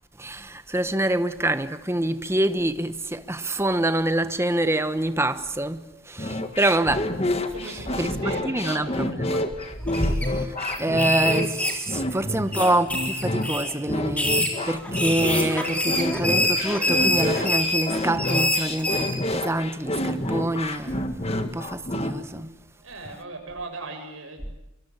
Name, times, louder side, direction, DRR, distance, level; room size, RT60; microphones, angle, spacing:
voice 1, 0.2-7.1 7.6-8.1 8.4-9.4 9.8-21.0 21.5-22.5, right 1 dB, 10° right, 1.1 m, -26 dB
sound 1, 6.2-22.1, left 1 dB, 30° left, 1.9 m, -28 dB
voice 2, 7.5-9.1 12.2-12.7 22.8-24.6, right 3 dB, 75° right, 7.1 m, -39 dB
sound 2, 9.5-10.2 10.6-12.1 12.5-13.7 14.1-19.1, left 1 dB, 5° left, 3.9 m, -25 dB
26.0 x 24.0 x 8.6 m
head